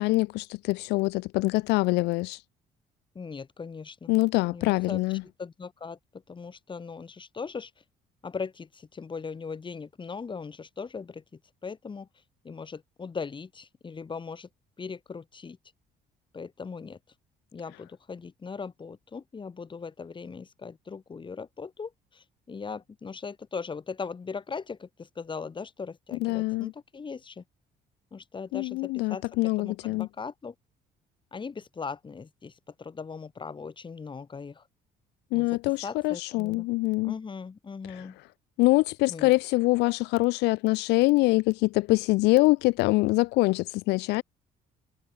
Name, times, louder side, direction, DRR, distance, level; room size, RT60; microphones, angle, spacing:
voice 1, 0.0-2.4 4.1-5.2 26.2-26.7 28.5-30.1 35.3-37.1 37.9-38.0 38.6-44.2, left 22 dB, 90° left, 0.5 m, -24 dB
voice 2, 3.1-4.2 4.5-5.0 5.4-7.7 8.2-11.2 11.6-12.1 12.4-14.5 14.8-15.6 16.3-17.0 17.5-27.4 28.1-29.2 29.6-30.5 31.3-34.6 35.3-36.7 37.0-38.2 39.1-39.3, left 5 dB, 30° left, 4.2 m, -39 dB
cardioid pair, 110°, 17 cm